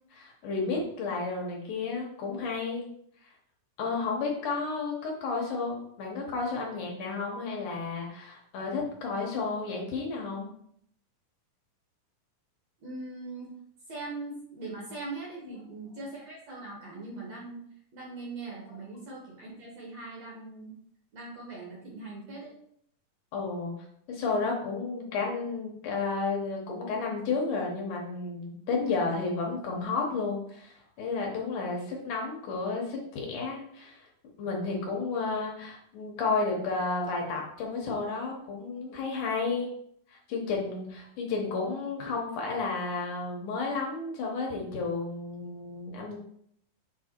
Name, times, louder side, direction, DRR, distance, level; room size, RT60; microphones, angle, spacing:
voice 1, 0.1-2.9 3.2-3.3 3.8-10.5 23.3-23.7 24.1-34.1 34.4-39.7 40.1-46.2, left 4 dB, 70° left, -1 dB, 2.3 m, -32 dB
voice 2, 12.8-13.5 13.9-17.6 17.9-20.7 21.1-22.5, right 3 dB, 60° right, -3 dB, 2.0 m, -41 dB
7.5 x 3.4 x 4.4 m, 0.69 s
omnidirectional pair, 4.2 m